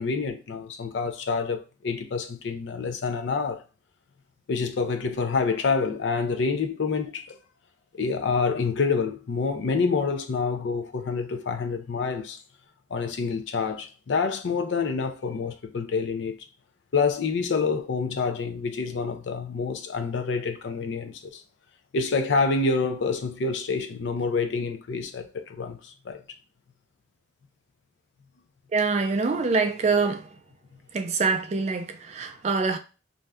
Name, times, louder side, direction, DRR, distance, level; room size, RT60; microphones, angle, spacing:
voice 1, 0.0-3.6 4.5-7.4 8.0-12.4 12.9-16.3 16.9-21.4 21.9-26.2, left 4 dB, 70° left, 0.4 m, -27 dB
voice 2, 28.7-30.3 30.9-32.8, right 4 dB, 35° right, 0.3 m, -25 dB
2.6 x 2.2 x 3.4 m
head